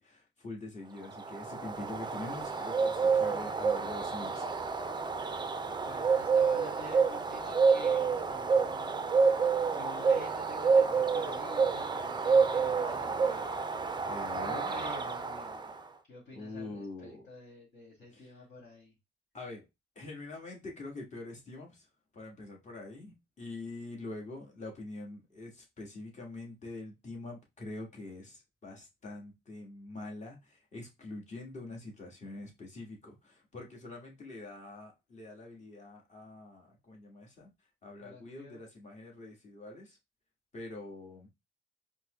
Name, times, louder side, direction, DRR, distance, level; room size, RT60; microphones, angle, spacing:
voice 1, 0.0-4.8 14.0-14.7 16.3-17.2 18.1-18.2 19.3-19.6 19.9-21.9 22.1-37.5 37.8-40.0 40.5-41.3, left 2 dB, 35° left, 1.6 m, -45 dB
Bird, 1.1-15.8, right 5 dB, 20° right, 0.5 m, -29 dB
voice 2, 5.8-13.7 14.3-15.7 16.1-18.9 38.0-38.6, left 2 dB, 55° left, 2.0 m, -49 dB
4.5 x 2.2 x 3.0 m
cardioid pair, 90°, 20 cm